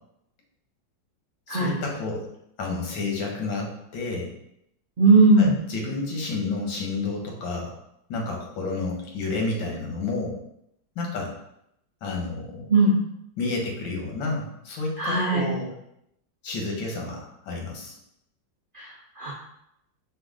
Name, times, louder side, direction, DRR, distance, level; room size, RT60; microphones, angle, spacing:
voice 1, 1.5-2.3 2.6-4.3 5.4-7.8 8.1-10.4 10.9-11.3 12.0-12.7 13.4-15.7 16.4-18.0, left 3 dB, 90° left, 0 dB, 1.8 m, -30 dB
voice 2, 5.0-5.5 12.7-13.0 15.0-15.5 18.7-19.3, right 2 dB, 70° right, -5 dB, 0.5 m, -19 dB
5.2 x 2.6 x 3.7 m, 0.77 s
omnidirectional pair, 2.0 m